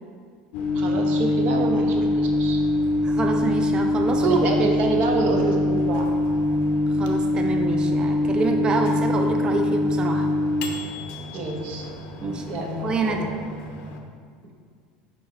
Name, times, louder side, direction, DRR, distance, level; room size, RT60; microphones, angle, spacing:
Microwave oven, 0.5-14.0, left 1 dB, 60° left, 0.7 m, -24 dB
voice 1, 0.7-2.6 4.2-6.1 11.3-11.8 12.5-13.2, right 3 dB, 50° right, 2 dB, 1.0 m, -27 dB
voice 2, 3.0-4.5 6.9-10.3 12.2-12.5 12.8-13.2, right 3 dB, 25° right, 4 dB, 0.6 m, -26 dB
5.2 x 4.5 x 4.2 m, 2.1 s
supercardioid pair, 135°, 4 cm